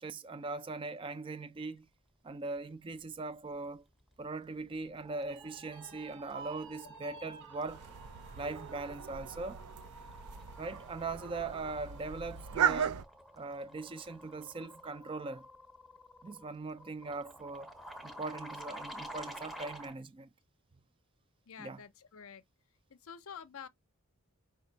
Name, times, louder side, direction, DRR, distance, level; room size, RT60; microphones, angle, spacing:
voice 1, 0.0-1.9 2.2-3.8 4.2-7.9 8.3-9.6 10.6-13.0 13.4-15.4 16.2-17.7 18.0-20.3 21.6-21.8, right 3 dB, 25° right, 0.3 m, -40 dB
sound 1, 4.1-4.4 4.7-20.0, right 1 dB, ahead, 0.7 m, -51 dB
sound 2, 5.3-12.9 13.4-13.5 13.9-14.5, right 4 dB, 55° right, 1.0 m, -55 dB
sound 3, 7.7-13.0, right 8 dB, 85° right, 0.5 m, -37 dB
voice 2, 21.5-22.4 22.9-23.7, left 7 dB, 65° left, 0.6 m, -49 dB
5.2 x 2.3 x 3.9 m
head